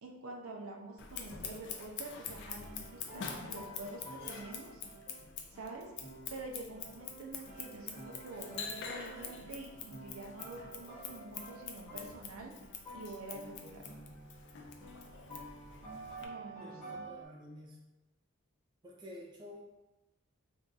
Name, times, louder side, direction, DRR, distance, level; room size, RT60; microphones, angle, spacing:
voice 1, 0.0-4.8 5.5-5.9 6.3-12.5 12.9-13.9 16.2-17.0, right 2 dB, 70° right, 0 dB, 0.5 m, -47 dB
Scissors, 1.0-16.3, left 6 dB, 55° left, 0.3 m, -46 dB
sound 1, 2.6-12.3 12.6-17.3, right 1 dB, 5° left, 1.0 m, -50 dB
voice 2, 16.6-17.8 18.8-19.6, left 1 dB, 20° right, -3 dB, 0.4 m, -50 dB
2.6 x 2.3 x 3.9 m, 1.0 s
head